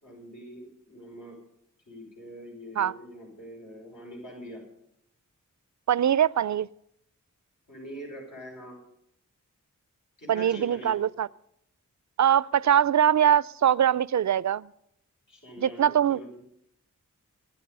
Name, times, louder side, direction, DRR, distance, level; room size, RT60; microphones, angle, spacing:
voice 1, 0.0-1.4 1.9-4.6 7.7-8.8 10.2-11.0 15.3-16.3, equal, 65° left, -3 dB, 6.0 m, -43 dB
voice 2, 5.9-6.7 10.3-11.3 12.2-14.7 15.6-16.2, right 9 dB, 60° right, 21 dB, 0.5 m, -22 dB
23.0 x 9.2 x 5.5 m, 0.76 s
cardioid pair, 45°, 33 cm